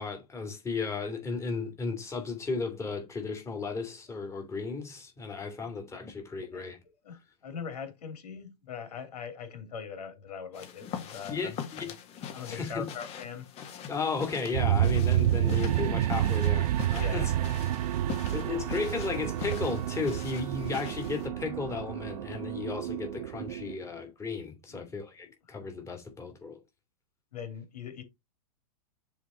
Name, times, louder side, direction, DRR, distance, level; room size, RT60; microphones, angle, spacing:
voice 1, 0.0-6.8 11.3-11.9 12.5-12.9 13.9-17.3 18.3-26.6, left 4 dB, 15° left, 2.7 m, -34 dB
voice 2, 6.1-6.6 7.0-11.9 12.2-13.5 16.9-17.3 24.7-25.0 25.5-25.6 27.3-28.0, left 6 dB, 85° left, 3.1 m, -42 dB
sound 1, 10.5-21.3, left 8 dB, 30° left, 1.8 m, -43 dB
sound 2, 14.5-23.7, right 13 dB, 80° right, 0.4 m, -29 dB
7.0 x 4.3 x 4.4 m
hypercardioid pair, 135°, 20 cm